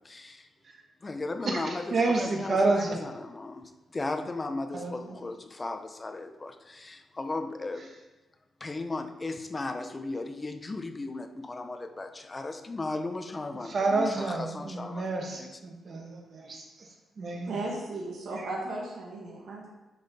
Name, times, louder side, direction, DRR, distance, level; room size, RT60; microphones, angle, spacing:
voice 1, 0.0-0.5 1.0-7.9 8.6-15.6, left 2 dB, 20° left, 7 dB, 0.7 m, -36 dB
voice 2, 1.4-3.0 4.7-5.0 13.6-16.9 17.2-17.5, right 3 dB, 40° right, 2 dB, 1.3 m, -29 dB
voice 3, 17.5-19.7, right 2 dB, 75° right, -3 dB, 2.0 m, -35 dB
10.5 x 5.3 x 4.2 m, 1.1 s
wide cardioid pair, 140°, 0 cm